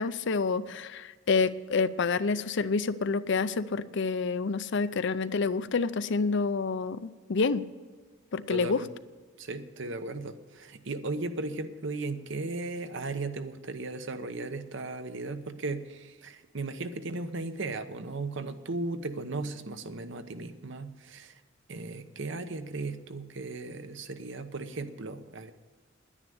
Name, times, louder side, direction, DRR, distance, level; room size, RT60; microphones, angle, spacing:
voice 1, 0.0-7.6 8.3-8.8, left 4 dB, 60° left, 14 dB, 0.5 m, -28 dB
voice 2, 8.5-8.9 9.4-21.3 21.7-25.5, right 3 dB, 65° right, 10 dB, 0.9 m, -36 dB
10.5 x 10.0 x 7.7 m, 1.4 s
head